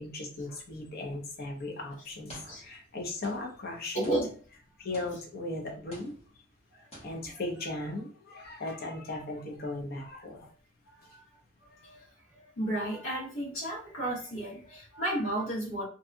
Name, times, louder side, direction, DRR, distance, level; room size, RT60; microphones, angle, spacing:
voice 1, 0.0-4.1 4.8-6.1 7.0-10.5, left 2 dB, 50° left, 1 dB, 0.6 m, -37 dB
sound 1, 1.2-1.4 2.3-2.9 3.2-5.5 5.9-6.6 6.9-7.5, equal, 30° left, 0.9 m, -52 dB
voice 2, 3.9-4.3 6.7-6.9 11.1-11.2 11.7-12.1 12.3-15.8, right 1 dB, 80° left, -6 dB, 1.1 m, -33 dB
2.7 x 2.3 x 2.5 m, 0.41 s
head